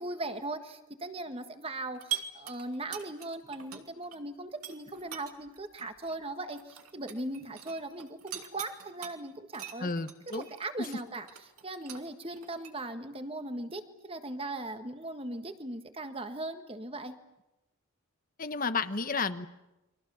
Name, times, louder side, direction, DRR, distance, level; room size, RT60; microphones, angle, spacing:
voice 1, 0.0-9.9 10.3-11.3 11.6-17.2, right 2 dB, 25° right, 8 dB, 1.7 m, -39 dB
sound 1, 2.0-4.2 4.5-9.1 9.5-12.7, right 10 dB, 85° right, 2.6 m, -42 dB
voice 2, 9.8-10.5 10.8-10.9 18.4-19.5, left 4 dB, 40° left, 10 dB, 1.1 m, -32 dB
30.0 x 24.0 x 7.1 m, 0.97 s
head